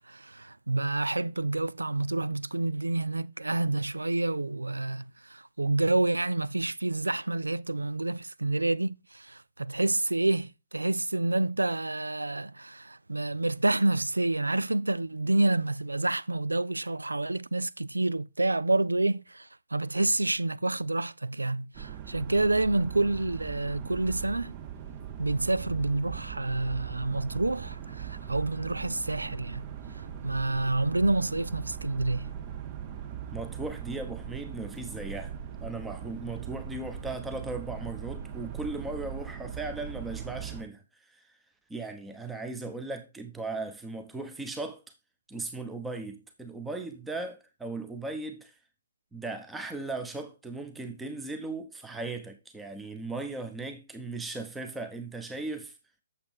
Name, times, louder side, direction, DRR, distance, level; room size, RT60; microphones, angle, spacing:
voice 1, 0.0-24.5 25.2-29.7 30.0-32.3, right 2 dB, 85° right, 0.3 m, -28 dB
sound 1, 21.7-40.6, right 9 dB, 30° right, 1.1 m, -40 dB
voice 2, 33.3-41.4 41.7-44.8 45.3-48.6 49.1-55.8, right 3 dB, 5° right, 1.0 m, -37 dB
8.6 x 7.1 x 3.6 m
figure-of-eight pair, 130°, 0 cm